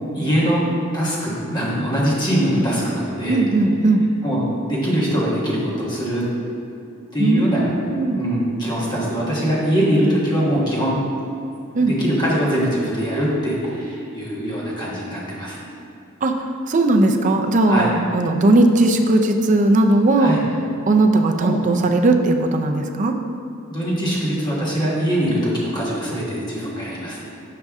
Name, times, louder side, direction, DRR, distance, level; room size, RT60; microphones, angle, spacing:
voice 1, 0.1-0.6 0.9-3.4 4.2-6.3 7.1-7.7 8.2-11.0 11.6-15.6 17.7-17.9 20.2-20.4 21.4-21.6 23.7-27.2, equal, 20° left, -6 dB, 1.3 m, -22 dB
voice 2, 3.3-4.0 7.2-7.4 7.9-8.2 11.8-11.9 16.2-20.4 20.9-23.1, right 2 dB, 40° right, 4 dB, 0.5 m, -17 dB
6.6 x 5.3 x 3.6 m, 2.8 s
head